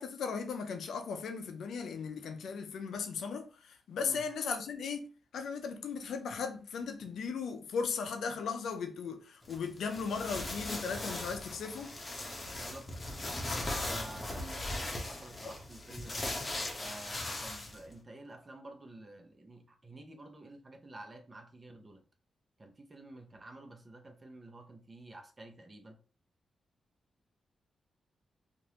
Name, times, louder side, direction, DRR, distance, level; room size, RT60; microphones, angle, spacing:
voice 1, 0.0-5.1 5.3-12.0, left 5 dB, 80° left, 0.5 m, -37 dB
sound 1, 9.4-17.9, left 1 dB, 35° left, 1.0 m, -39 dB
voice 2, 12.5-13.2 13.9-16.3 16.8-22.0 22.6-26.0, right 2 dB, 35° right, 0.8 m, -50 dB
3.0 x 2.6 x 2.9 m
supercardioid pair, 55°, 0 cm